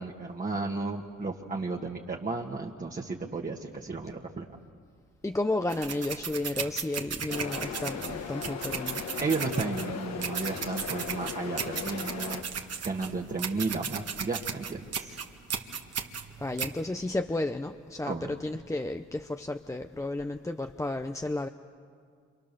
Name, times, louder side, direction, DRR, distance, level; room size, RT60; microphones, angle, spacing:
voice 1, 0.0-4.5 9.2-12.4 12.8-15.2 18.1-18.3, right 3 dB, 25° right, 0 dB, 1.7 m, -33 dB
voice 2, 5.2-9.0 16.4-21.5, left 2 dB, 10° left, 6 dB, 0.8 m, -32 dB
sound 1, 5.7-16.7, right 6 dB, 55° right, 1.9 m, -36 dB
sound 2, 7.3-12.4, left 6 dB, 60° left, 1.7 m, -37 dB
28.5 x 26.5 x 6.9 m, 2.1 s
cardioid pair, 90°, 30 cm